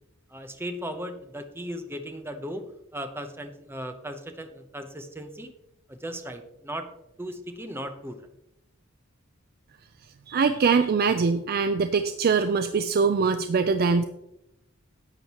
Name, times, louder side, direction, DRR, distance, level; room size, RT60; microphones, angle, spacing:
voice 1, 0.3-2.7 2.9-5.5 5.9-6.9 7.2-8.2, equal, 10° right, 6 dB, 0.8 m, -37 dB
voice 2, 10.3-14.0, right 5 dB, 45° right, 9 dB, 0.4 m, -23 dB
11.0 x 7.9 x 3.0 m, 0.84 s
head